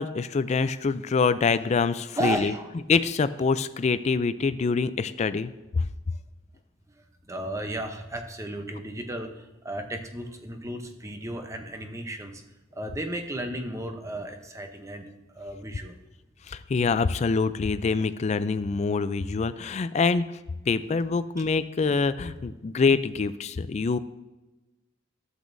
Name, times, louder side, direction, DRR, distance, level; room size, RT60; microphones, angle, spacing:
voice 1, 0.0-2.5 2.9-5.9 16.5-20.3 20.7-24.0, left 4 dB, 35° left, 13 dB, 0.3 m, -25 dB
voice 2, 2.2-2.7 7.3-12.4 12.8-15.1 15.3-16.0, right 1 dB, 15° right, 5 dB, 0.7 m, -34 dB
12.5 x 8.2 x 2.6 m, 1.1 s
head